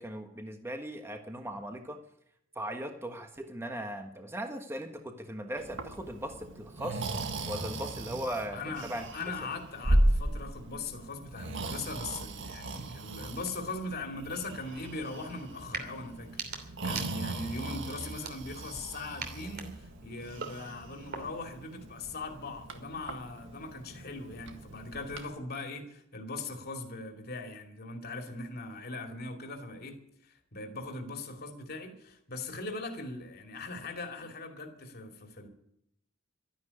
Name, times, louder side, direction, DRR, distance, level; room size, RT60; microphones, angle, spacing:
voice 1, 0.0-2.0 2.5-7.0 7.5-9.0, right 1 dB, 15° right, 5 dB, 1.4 m, -38 dB
Breathing, 5.6-25.3, right 1 dB, 65° right, 1.8 m, -36 dB
voice 2, 8.5-30.0 30.2-35.5, left 3 dB, 50° left, 3 dB, 2.6 m, -40 dB
sound 1, 15.7-15.9 16.2-17.5 18.1-18.8 19.2-21.5, right 5 dB, 50° right, 2.9 m, -42 dB
12.5 x 11.5 x 9.9 m, 0.74 s
head